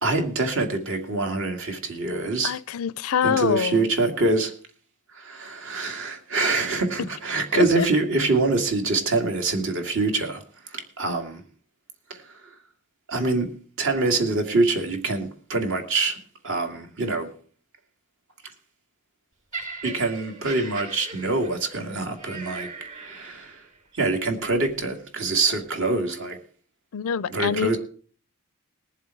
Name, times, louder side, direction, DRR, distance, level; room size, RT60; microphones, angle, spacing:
voice 1, 0.0-2.5 3.2-4.5 5.1-11.4 12.1-12.2 13.1-13.5 13.8-16.2 16.4-17.3 19.8-22.7 23.0-23.6 23.9-26.4 27.3-27.8, right 3 dB, 65° right, 2.3 m, -25 dB
voice 2, 2.4-3.9 7.0-7.1 7.6-7.9 26.9-27.8, left 7 dB, 75° left, 0.5 m, -25 dB
Laughter, 19.5-23.8 24.6-24.7, right 4 dB, 35° right, 3.6 m, -39 dB
20.5 x 7.3 x 4.6 m
head